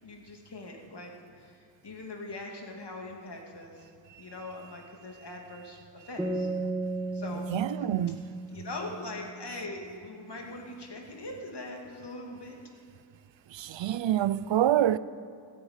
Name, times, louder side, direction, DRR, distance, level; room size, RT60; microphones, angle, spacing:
voice 1, 0.0-3.9 4.2-6.5 7.1-7.5 8.5-12.5, left 2 dB, 65° left, 2.7 m, -42 dB
sound 1, 6.2-9.7, right 2 dB, 5° right, 2.7 m, -35 dB
voice 2, 7.5-8.2 13.5-15.0, right 12 dB, 80° right, 0.5 m, -26 dB
15.0 x 10.5 x 8.9 m
cardioid pair, 55°, 44 cm